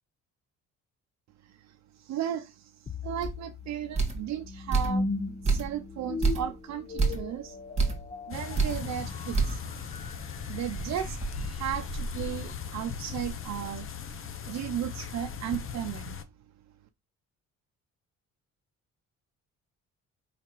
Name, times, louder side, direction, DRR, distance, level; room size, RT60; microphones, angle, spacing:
voice 1, 2.0-2.7 3.0-5.0 5.4-7.6 8.3-9.6 10.5-13.9 14.4-16.2, right 10 dB, 65° right, 0.5 m, -35 dB
sound 1, 2.9-12.0, left 3 dB, 25° left, 0.4 m, -38 dB
sound 2, 3.2-3.4 3.9-4.3 4.7-5.0 5.4-5.9 6.2-6.5 7.0-7.3 7.8-8.1 8.6-8.8 9.3-9.7 10.1-10.2 10.6-12.1, right 4 dB, 20° right, 1.9 m, -28 dB
sound 3, 8.3-16.2, left 6 dB, 45° left, 0.8 m, -38 dB
5.0 x 3.3 x 3.0 m
cardioid pair, 90°, 30 cm